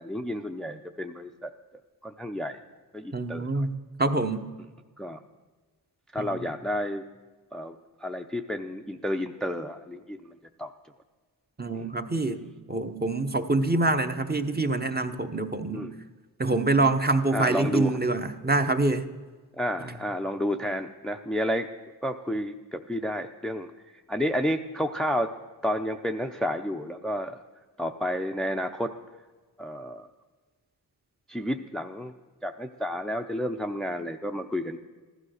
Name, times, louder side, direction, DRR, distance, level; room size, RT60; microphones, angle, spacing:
voice 1, 0.0-1.5 2.0-2.6 2.9-3.7 5.0-5.2 6.1-7.0 7.5-7.7 8.0-10.7 11.7-11.9 15.7-15.9 17.3-17.9 19.6-21.7 22.0-23.7 24.1-25.3 25.6-27.4 27.8-28.9 29.6-30.1 31.3-32.1 32.4-34.8, equal, ahead, 5 dB, 0.6 m, -31 dB
voice 2, 3.1-4.5 6.2-6.5 11.6-15.9 16.4-19.1 19.8-20.0, right 2 dB, 25° right, 7 dB, 1.0 m, -26 dB
15.5 x 12.5 x 6.5 m, 1.4 s
wide cardioid pair, 120°, 40 cm